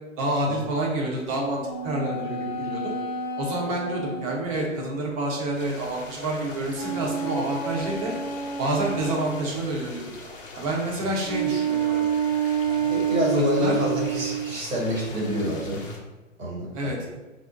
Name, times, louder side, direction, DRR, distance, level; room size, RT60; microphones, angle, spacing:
voice 1, 0.2-2.9 3.4-8.1 8.6-10.0 10.5-12.0 13.5-13.7 16.7-17.0, right 1 dB, 30° right, -2 dB, 0.7 m, -28 dB
sound 1, 1.6-5.1 6.7-9.6 11.2-14.5, right 6 dB, 5° left, 0.4 m, -29 dB
sound 2, 5.6-16.0, left 2 dB, 45° left, 0.6 m, -42 dB
voice 2, 12.8-15.9 16.4-16.9, left 1 dB, 85° right, -5 dB, 1.4 m, -27 dB
2.6 x 2.0 x 3.6 m, 1.1 s
figure-of-eight pair, 125°, 39 cm